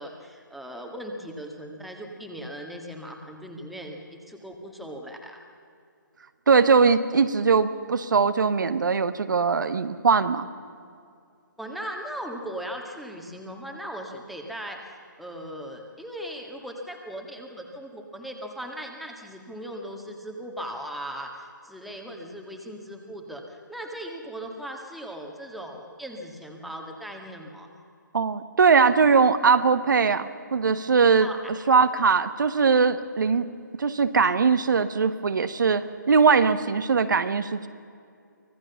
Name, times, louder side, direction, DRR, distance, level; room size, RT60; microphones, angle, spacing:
voice 1, 0.0-5.4 11.6-14.8 15.2-27.7 31.2-31.4, equal, ahead, 1 dB, 1.8 m, -38 dB
voice 2, 6.5-10.5 28.1-31.3 31.7-33.5 33.8-37.7, right 5 dB, 70° right, 10 dB, 1.3 m, -21 dB
25.0 x 17.5 x 7.1 m, 2.4 s
hypercardioid pair, 155°, 11 cm